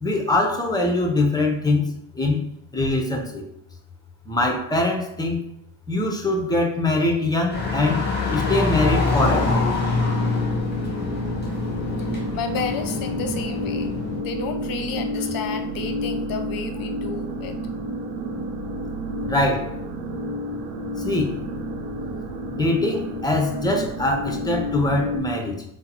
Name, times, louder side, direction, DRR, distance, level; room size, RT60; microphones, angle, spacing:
voice 1, 0.0-1.9 2.1-2.4 2.7-3.4 4.3-5.4 5.9-9.6 19.2-19.7 21.0-21.3 22.5-25.6, left 2 dB, 10° left, 1 dB, 0.7 m, -23 dB
sound 1, 7.5-14.2, left 4 dB, 25° left, 1.1 m, -25 dB
sound 2, 9.2-25.2, equal, 85° right, 0.6 m, -30 dB
voice 2, 12.0-17.5, left 5 dB, 55° left, 7 dB, 0.6 m, -32 dB
3.6 x 2.0 x 3.0 m, 0.76 s
supercardioid pair, 80°, 41 cm